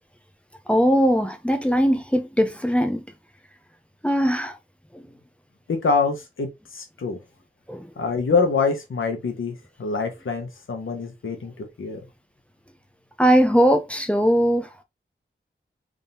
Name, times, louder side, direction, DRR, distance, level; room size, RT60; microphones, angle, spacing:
voice 1, 0.7-3.0 4.0-4.6 7.7-7.9 13.2-14.7, equal, 5° left, 0.6 m, -20 dB
voice 2, 5.7-7.2 8.0-11.5 11.8-12.0, left 4 dB, 80° left, 1.1 m, -25 dB
3.7 x 3.6 x 2.7 m
wide cardioid pair, 95°, 20 cm